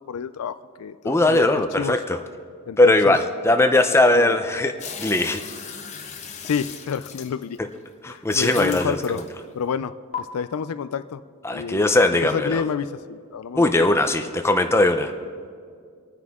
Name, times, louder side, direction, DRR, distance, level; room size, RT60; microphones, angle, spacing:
voice 1, 0.0-2.0 2.7-3.2 4.2-4.4 6.4-7.6 8.0-9.2 9.5-9.9 10.2-11.2 11.5-13.7, left 7 dB, 85° left, 13 dB, 0.4 m, -29 dB
voice 2, 1.0-2.2 2.8-4.7 5.0-5.4 8.0-9.2 11.4-12.6 13.6-15.1, left 2 dB, 10° left, 6 dB, 0.6 m, -19 dB
sound 1, 4.8-7.7 8.3-9.6 10.1-10.2, left 6 dB, 30° left, 1.0 m, -37 dB
25.5 x 9.7 x 3.6 m, 2.1 s
head